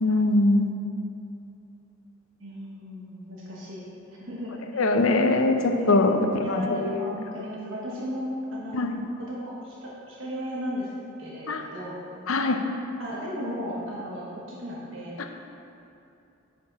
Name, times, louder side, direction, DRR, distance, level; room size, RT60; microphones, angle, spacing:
voice 1, 0.0-0.7 4.7-7.1 8.7-8.9 11.5-11.6 12.3-12.6, left 2 dB, 85° left, 5 dB, 0.7 m, -22 dB
voice 2, 2.4-8.9 9.4-10.9 11.2-12.1 13.0-15.2, equal, 70° right, -5 dB, 1.3 m, -35 dB
8.6 x 5.9 x 4.8 m, 2.7 s
head